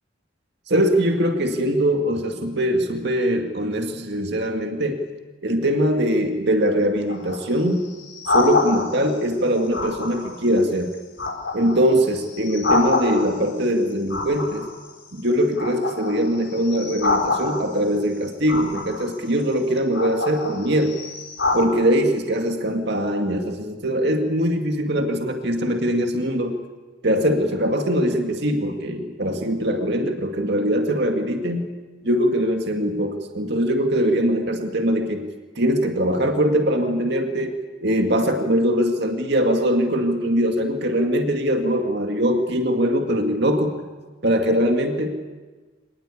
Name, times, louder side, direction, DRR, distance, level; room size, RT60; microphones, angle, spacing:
voice 1, 0.7-5.0 5.4-7.8 8.3-10.9 11.5-14.7 15.1-20.9 21.5-26.6 27.0-31.7 32.0-35.3 35.6-43.8 44.2-45.1, equal, 60° right, 4 dB, 2.2 m, -22 dB
sound 1, 6.9-9.1 9.7-10.4 10.8-13.5 14.1-15.2 15.5-17.9 18.5-19.2 19.8-21.6, left 3 dB, 70° left, 5.0 m, -26 dB
26.0 x 20.0 x 8.6 m, 1.3 s
head